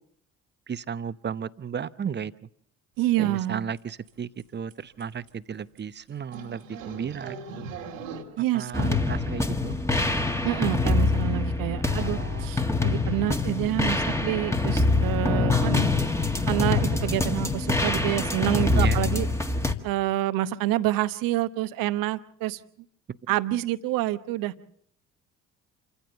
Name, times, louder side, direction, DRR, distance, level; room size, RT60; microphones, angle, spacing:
voice 1, 0.7-2.3 3.2-7.7 8.5-9.8 11.8-12.5 18.7-19.0 23.1-23.2, right 7 dB, 30° right, 16 dB, 0.8 m, -34 dB
voice 2, 3.0-3.6 8.4-9.0 10.4-15.9 16.5-19.3 19.8-22.6 23.3-24.5, right 15 dB, 60° right, 14 dB, 1.0 m, -27 dB
sound 1, 3.1-3.2 3.4-3.8 4.1-4.2 4.4-4.5 4.7-4.8 5.0-5.3 5.8-5.9 6.3-8.2, right 4 dB, 85° right, 2.2 m, -39 dB
sound 2, 8.7-19.7, left 3 dB, 5° left, 1.8 m, -25 dB
27.5 x 15.0 x 6.9 m, 0.64 s
hypercardioid pair, 50°, 37 cm